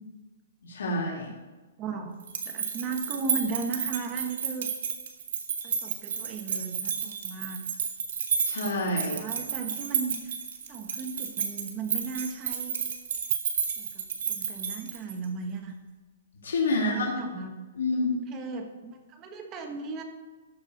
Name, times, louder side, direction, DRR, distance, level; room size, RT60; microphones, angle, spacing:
voice 1, 0.6-1.3 8.4-9.2 16.4-17.2 17.8-18.1, left 2 dB, 90° left, -3 dB, 2.6 m, -28 dB
voice 2, 1.8-2.2 2.4-4.7 5.6-7.6 9.0-10.4 10.7-12.8 13.8-15.7 16.7-17.5 18.3-20.0, right 4 dB, 25° right, 4 dB, 1.4 m, -36 dB
sound 1, 2.2-15.2, right 7 dB, 65° right, 1.8 m, -31 dB
13.5 x 4.7 x 6.6 m, 1.2 s
hypercardioid pair, 155°, 0 cm